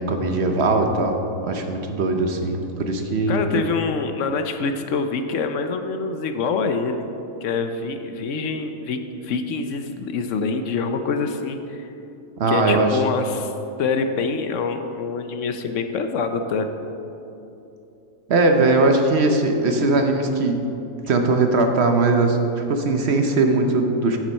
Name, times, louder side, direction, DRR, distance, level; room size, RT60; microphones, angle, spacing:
voice 1, 0.0-3.4 12.4-12.9 18.3-20.6 21.1-24.2, right 3 dB, 60° right, 5 dB, 0.9 m, -20 dB
voice 2, 3.3-7.1 7.4-11.9 12.5-13.5 13.8-16.7, left 4 dB, 70° left, 7 dB, 1.0 m, -25 dB
9.0 x 7.3 x 5.3 m, 2.9 s
omnidirectional pair, 1.4 m